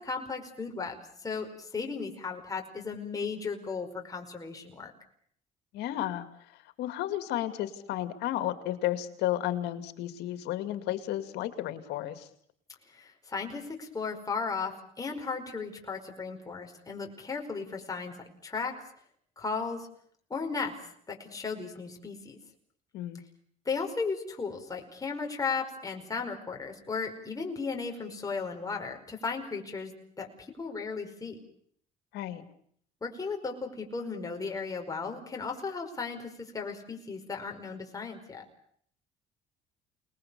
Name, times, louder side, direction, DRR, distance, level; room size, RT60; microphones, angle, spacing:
voice 1, 0.0-4.9 12.9-18.2 18.4-18.7 19.4-19.9 20.3-22.4 23.6-29.9 30.2-31.4 33.0-38.4, left 4 dB, 20° left, 2 dB, 5.2 m, -35 dB
voice 2, 5.7-6.3 6.8-12.3 22.9-23.2 32.1-32.4, left 13 dB, 85° left, 10 dB, 2.4 m, -32 dB
29.0 x 20.5 x 7.0 m, 0.64 s
cardioid pair, 110°, 17 cm